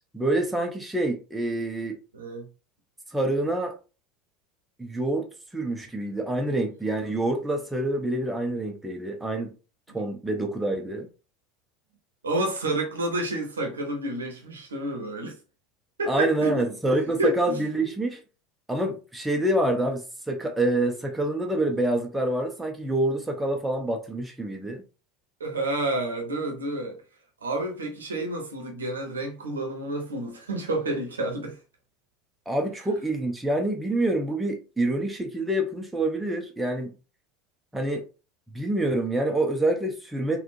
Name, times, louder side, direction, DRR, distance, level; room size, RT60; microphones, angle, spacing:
voice 1, 0.1-2.0 3.1-3.7 4.8-5.3 5.5-9.5 9.9-11.1 16.1-18.2 18.7-24.8 32.5-36.9 37.7-38.0 38.5-40.4, right 1 dB, 5° right, 0.7 m, -26 dB
voice 2, 2.1-2.4 12.2-15.4 16.0-16.7 17.2-17.6 25.4-27.0 27.4-31.6, right 1 dB, 75° right, 0.8 m, -29 dB
3.5 x 2.3 x 2.6 m
figure-of-eight pair, 75°, 0 cm